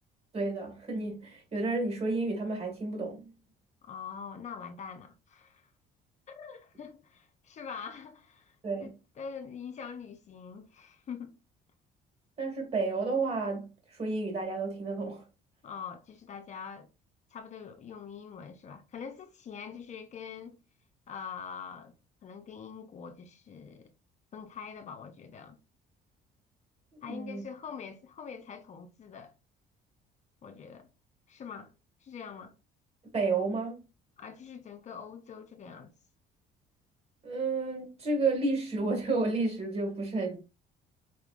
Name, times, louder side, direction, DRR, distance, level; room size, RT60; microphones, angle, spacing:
voice 1, 0.3-3.3 8.6-8.9 12.4-15.3 26.9-27.4 33.1-33.8 37.2-40.4, right 3 dB, 40° right, 2.0 m, -31 dB
voice 2, 3.8-5.7 6.3-11.3 15.6-16.9 17.3-20.6 21.1-21.9 22.2-23.9 24.3-25.6 27.0-29.3 30.4-30.9 31.3-31.7 32.0-32.5 34.2-35.9, left 6 dB, 45° left, 0.6 m, -44 dB
4.3 x 3.4 x 2.5 m
cardioid pair, 110°, 17 cm